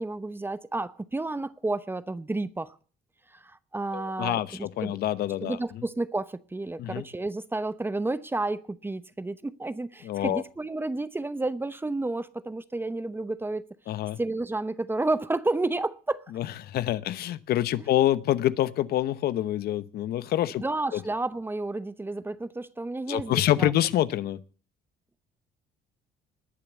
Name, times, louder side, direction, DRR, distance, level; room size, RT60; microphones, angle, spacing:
voice 1, 0.0-2.8 3.3-5.0 5.4-13.6 14.2-16.2 20.6-23.7, right 2 dB, 15° right, 0.8 m, -31 dB
voice 2, 3.9-5.6 6.8-7.0 10.0-10.4 13.9-14.2 16.3-20.6 20.9-21.0 23.1-24.4, left 13 dB, 70° left, 1.0 m, -26 dB
20.5 x 7.2 x 8.2 m
cardioid pair, 110°, 17 cm